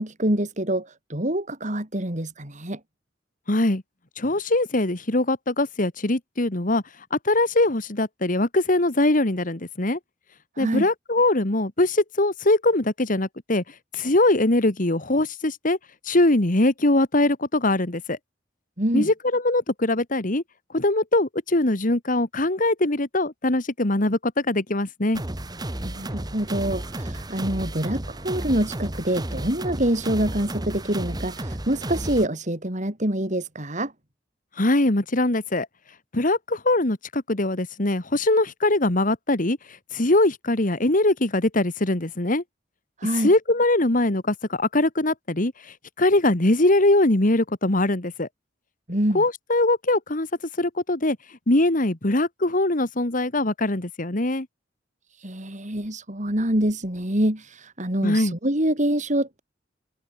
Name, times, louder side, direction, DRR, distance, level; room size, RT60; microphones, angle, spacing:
voice 1, 0.0-2.8 10.6-10.9 18.8-19.1 25.8-33.9 43.0-43.3 48.9-49.2 55.2-59.4, right 1 dB, 40° right, 5.0 m, -26 dB
voice 2, 3.5-3.8 4.2-6.8 7.1-10.0 10.6-13.6 13.9-15.8 16.1-18.2 18.9-20.4 20.7-25.2 34.6-35.7 36.1-39.6 39.9-42.4 43.2-45.5 46.0-48.3 49.1-50.3 50.6-51.2 51.5-54.5 58.0-58.3, left 2 dB, 45° left, 2.1 m, -22 dB
sound 1, 25.1-32.3, right 1 dB, 20° right, 1.6 m, -32 dB
head